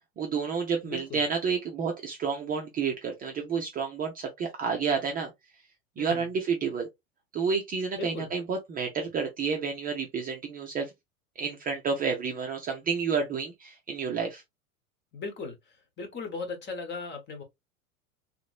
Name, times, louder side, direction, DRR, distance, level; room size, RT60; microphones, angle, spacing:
voice 1, 0.2-5.3 6.0-6.9 7.3-10.9 11.4-14.4, right 5 dB, 20° right, 0.6 m, -30 dB
voice 2, 0.8-1.2 6.0-6.3 8.0-8.3 15.1-15.6 16.0-17.4, left 4 dB, 25° left, 1.2 m, -37 dB
3.2 x 3.0 x 2.4 m
figure-of-eight pair, 90°, 43 cm